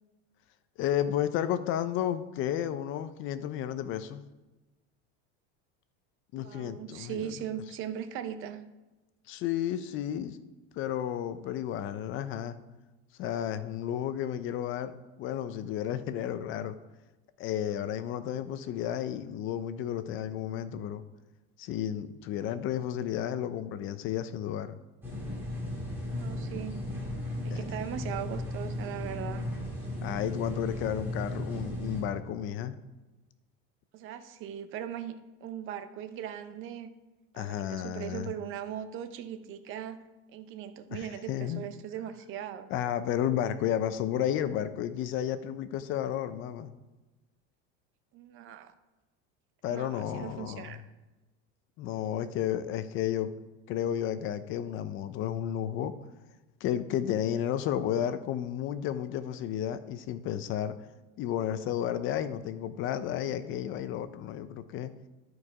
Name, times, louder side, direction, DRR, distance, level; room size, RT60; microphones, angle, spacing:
voice 1, 0.8-4.2 6.3-7.3 9.3-10.4 10.7-12.5 13.2-16.8 17.4-21.0 21.6-24.7 27.5-27.6 30.0-32.8 37.3-38.3 40.9-41.6 42.7-46.7 49.6-50.8 51.8-53.3 53.7-55.9 56.6-60.7 61.2-64.9, left 10 dB, 45° left, 12 dB, 0.6 m, -32 dB
voice 2, 6.4-8.7 26.1-26.8 27.4-29.5 33.9-36.9 37.4-40.0 40.3-42.7 48.1-48.7 49.7-50.8, right 9 dB, 45° right, 11 dB, 0.7 m, -39 dB
sound 1, 25.0-32.0, left 1 dB, 5° right, 3.3 m, -35 dB
12.5 x 4.7 x 4.8 m, 1.1 s
cardioid pair, 150°, 29 cm